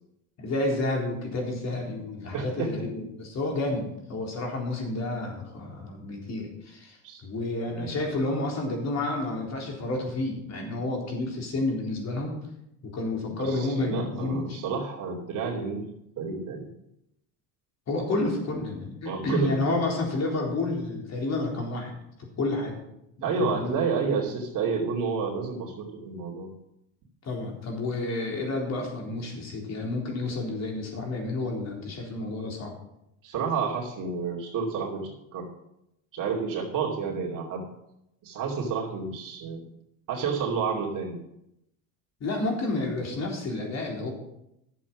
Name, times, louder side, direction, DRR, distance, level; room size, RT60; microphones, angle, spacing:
voice 1, 0.4-12.3 12.9-14.6 17.9-21.9 22.4-22.8 23.4-23.8 27.2-32.7 42.2-44.1, left 2 dB, 40° left, 0 dB, 4.0 m, -30 dB
voice 2, 2.3-2.8 7.0-7.2 7.7-7.9 13.4-15.9 16.2-16.7 19.0-19.8 23.2-26.5 33.2-35.5 36.1-37.6 38.2-39.6 40.1-41.2, right 5 dB, 50° right, -1 dB, 2.7 m, -30 dB
12.0 x 7.7 x 6.1 m, 0.81 s
cardioid pair, 120°, 39 cm